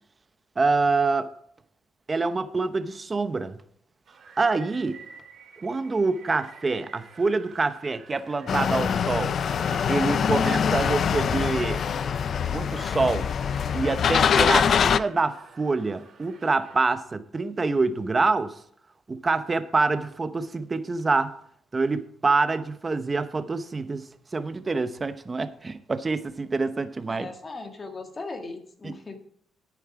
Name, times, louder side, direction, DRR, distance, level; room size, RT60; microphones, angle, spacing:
voice 1, 0.6-1.3 2.1-3.6 4.4-5.0 5.6-9.3 9.9-11.8 12.5-13.3 13.7-18.5 19.1-21.3 21.7-24.0 24.3-27.3 28.8-28.9, right 3 dB, 30° right, 11 dB, 0.8 m, -26 dB
sound 1, 4.1-16.8, right 6 dB, 60° right, 2.2 m, -49 dB
sound 2, 8.5-15.0, left 7 dB, 55° left, 0.4 m, -24 dB
voice 2, 27.1-29.2, left 3 dB, 30° left, 5 dB, 1.9 m, -38 dB
9.4 x 9.3 x 4.9 m, 0.65 s
cardioid pair, 90°, 0 cm